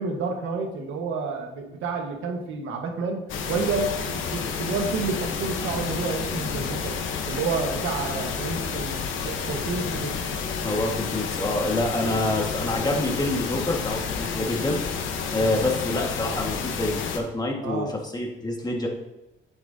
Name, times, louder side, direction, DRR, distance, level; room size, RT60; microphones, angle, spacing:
voice 1, 0.0-3.2 3.5-7.0 7.3-10.2 15.4-15.5 17.6-17.9, right 4 dB, 85° right, 3 dB, 1.4 m, -30 dB
sound 1, 3.3-17.2, left 6 dB, 80° left, 1.0 m, -30 dB
voice 2, 10.6-14.8 15.3-18.9, left 1 dB, 20° left, 1 dB, 1.7 m, -27 dB
8.9 x 7.0 x 2.7 m, 0.95 s
cardioid pair, 90°, 20 cm